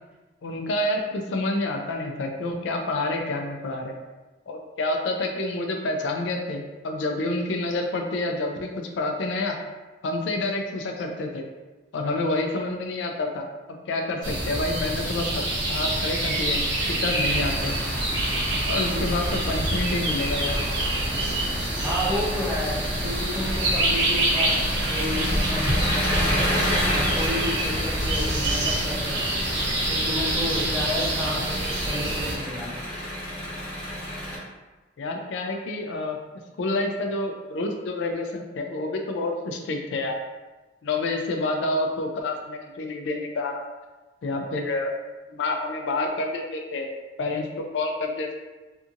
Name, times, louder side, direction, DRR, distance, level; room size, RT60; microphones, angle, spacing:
voice 1, 0.4-1.0 1.3-4.0 4.5-9.6 10.0-11.5 11.9-13.4 13.9-16.6 16.9-17.7 18.7-20.6 35.0-36.2 36.6-40.2 40.8-43.6 44.2-44.9 45.3-46.9 47.2-48.4, left 2 dB, 80° left, 3 dB, 0.4 m, -28 dB
sound 1, 14.2-32.3, right 1 dB, 75° right, 0.7 m, -27 dB
Engine, 17.2-34.4, equal, 30° left, 1.1 m, -30 dB
voice 2, 21.8-32.8, left 1 dB, 5° right, -7 dB, 0.6 m, -32 dB
2.7 x 2.5 x 2.4 m, 1.2 s
head